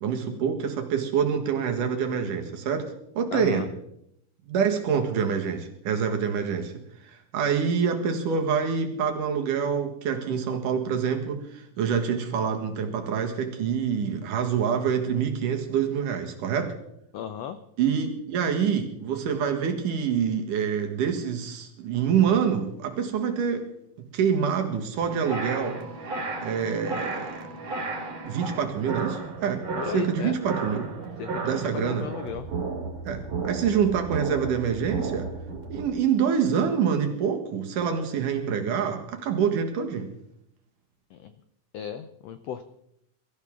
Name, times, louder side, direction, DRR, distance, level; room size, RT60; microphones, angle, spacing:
voice 1, 0.0-3.7 4.5-16.7 17.8-23.7 24.1-25.8 26.4-27.5 28.2-29.7 29.9-30.9 31.4-32.1 33.0-35.3 35.7-40.1, right 7 dB, 75° right, 4 dB, 3.2 m, -26 dB
voice 2, 3.3-3.7 17.1-17.6 29.7-30.4 31.2-32.5 41.1-41.3 41.7-42.6, left 8 dB, 80° left, 10 dB, 1.4 m, -35 dB
sound 1, 25.0-35.9, right 3 dB, 55° right, 3.5 m, -34 dB
23.0 x 14.0 x 3.6 m, 0.76 s
omnidirectional pair, 3.8 m